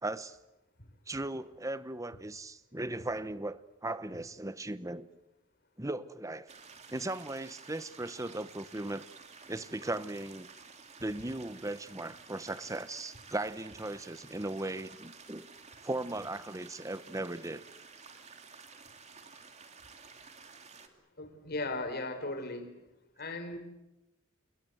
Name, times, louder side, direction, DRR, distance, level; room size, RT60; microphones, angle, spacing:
voice 1, 0.0-0.4 1.1-5.1 5.8-6.5 6.9-9.1 9.5-10.5 11.0-15.5 15.8-17.6, right 2 dB, 15° right, 14 dB, 1.0 m, -37 dB
sound 1, 6.5-20.9, right 5 dB, 35° right, 2.7 m, -53 dB
voice 2, 21.2-22.8 23.2-23.6, left 2 dB, 50° left, 9 dB, 4.1 m, -37 dB
28.5 x 21.5 x 8.0 m, 0.93 s
head